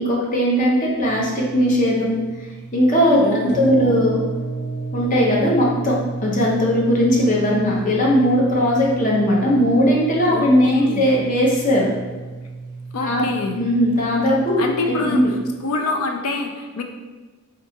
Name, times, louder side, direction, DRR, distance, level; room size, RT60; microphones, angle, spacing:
voice 1, 0.0-2.2 2.7-3.2 3.5-4.2 4.9-6.0 6.2-11.9 13.0-13.2 13.5-15.3, equal, 35° left, -4 dB, 0.7 m, -18 dB
sound 1, 1.0-15.5, right 3 dB, 50° right, 0.5 m, -32 dB
voice 2, 3.2-4.1 10.3-11.1 12.9-13.6 14.6-15.2 15.6-16.8, left 3 dB, 75° left, 4 dB, 0.4 m, -26 dB
3.8 x 2.3 x 2.7 m, 1.3 s
head